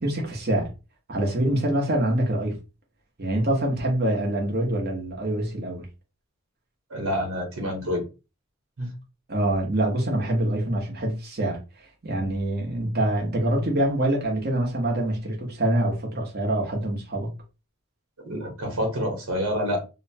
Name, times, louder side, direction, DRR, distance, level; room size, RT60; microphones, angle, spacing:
voice 1, 0.0-0.7 1.1-2.5 3.2-5.9 9.3-17.3, right 1 dB, 45° right, 0.9 m, -25 dB
voice 2, 6.9-8.0 8.8-8.9 18.2-19.8, equal, 90° right, 1.1 m, -27 dB
2.8 x 2.1 x 2.8 m
head